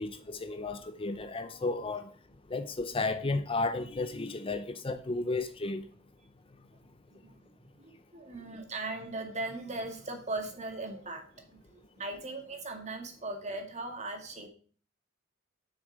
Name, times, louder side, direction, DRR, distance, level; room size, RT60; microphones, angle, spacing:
voice 1, 0.0-2.1 2.5-5.8, left 3 dB, 25° left, 0.6 m, -33 dB
voice 2, 7.1-7.4 7.8-14.5, right 2 dB, 35° right, 2.1 m, -39 dB
8.3 x 6.4 x 6.2 m
head